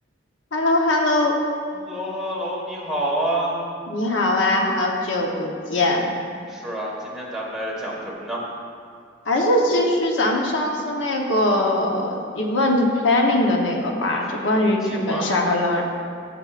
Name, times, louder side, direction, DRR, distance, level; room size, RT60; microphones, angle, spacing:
voice 1, 0.5-1.4 3.9-6.1 9.2-15.8, left 1 dB, 80° left, 0 dB, 1.0 m, -21 dB
voice 2, 1.7-3.6 6.5-8.5 14.1-15.3, right 1 dB, 5° right, -5 dB, 1.6 m, -28 dB
14.0 x 7.6 x 2.5 m, 2.2 s
head